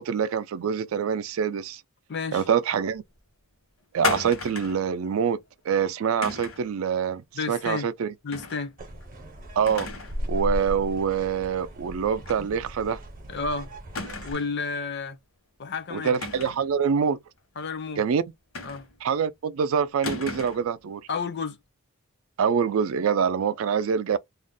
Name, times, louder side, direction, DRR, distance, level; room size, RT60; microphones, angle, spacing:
voice 1, 0.0-1.8 2.3-3.0 3.9-5.4 5.7-7.2 7.5-8.1 9.6-9.9 10.3-13.0 15.9-17.2 18.0-18.2 19.0-21.0 22.4-24.2, right 7 dB, 70° right, 0.4 m, -25 dB
voice 2, 2.1-2.4 7.3-7.9 8.2-8.7 13.3-13.7 14.2-15.2 15.6-16.1 17.6-18.0 18.6-18.8 21.1-21.6, left 4 dB, 55° left, 0.5 m, -31 dB
sound 1, 4.0-4.9 6.2-6.7 8.3-8.6 9.0-9.1 9.7-10.2 10.5-10.6 12.2-12.5 12.8-12.9 13.9-14.6 16.1-16.7 18.5-19.1 20.0-20.7, left 4 dB, 75° left, 1.0 m, -33 dB
sound 2, 8.8-14.3, equal, 40° right, 0.7 m, -36 dB
2.4 x 2.1 x 3.6 m
head